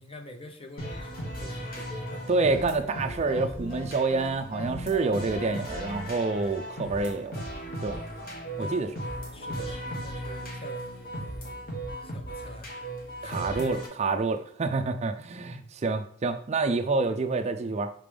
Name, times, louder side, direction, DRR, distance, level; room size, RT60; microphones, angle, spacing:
voice 1, 0.0-2.3 8.6-8.9 9.3-12.8 13.2-13.7 15.4-15.7, left 1 dB, 25° left, 0.8 m, -46 dB
sound 1, 0.8-13.9, equal, 45° left, 1.4 m, -37 dB
voice 2, 2.3-7.4 7.8-8.0 8.6-8.9 13.2-17.9, right 3 dB, 30° right, 0.4 m, -28 dB
5.9 x 5.2 x 3.3 m
head